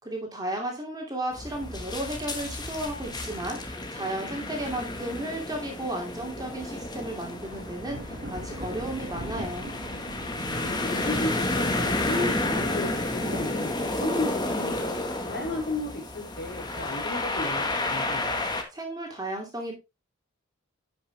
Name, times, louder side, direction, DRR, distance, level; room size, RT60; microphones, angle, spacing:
voice 1, 0.0-9.7 18.7-19.8, right 1 dB, 20° right, 1 dB, 2.5 m, -34 dB
sound 1, 1.3-18.6, left 2 dB, 20° left, 1.5 m, -31 dB
sound 2, 7.4-15.5, right 1 dB, 55° right, 2.0 m, -42 dB
voice 2, 10.3-15.0 15.3-18.2, left 2 dB, 50° left, -1 dB, 4.2 m, -34 dB
10.5 x 6.3 x 3.4 m, 0.25 s
head